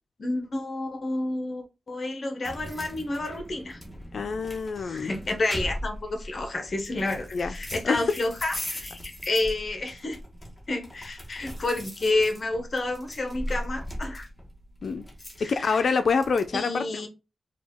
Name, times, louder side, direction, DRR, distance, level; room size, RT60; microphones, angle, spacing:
voice 1, 0.2-3.8 4.8-10.2 10.7-14.3 15.4-15.9 16.5-17.1, left 2 dB, 45° left, 0.9 m, -30 dB
sound 1, 2.4-16.5, equal, 10° left, 1.2 m, -39 dB
voice 2, 4.1-5.1 7.3-7.6 7.8-8.0 14.8-15.0 15.4-16.8, left 5 dB, 65° left, 0.4 m, -26 dB
5.0 x 2.3 x 3.5 m
wide cardioid pair, 145°, 0 cm